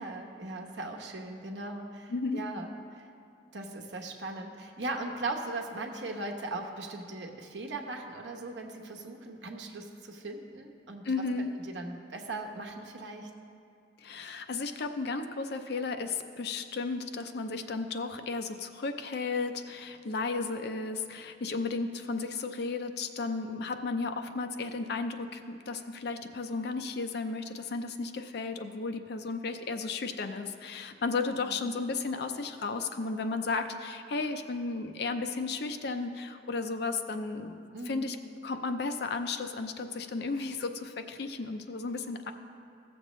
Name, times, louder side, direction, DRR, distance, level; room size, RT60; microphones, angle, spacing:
voice 1, 0.0-3.1 3.5-11.0 11.6-13.3 31.4-31.6 37.7-38.1, right 2 dB, 85° right, 2 dB, 1.0 m, -39 dB
voice 2, 2.1-2.4 11.0-11.5 14.0-38.2 38.4-42.3, left 4 dB, 65° left, 7 dB, 0.5 m, -34 dB
16.0 x 7.0 x 3.1 m, 2.4 s
head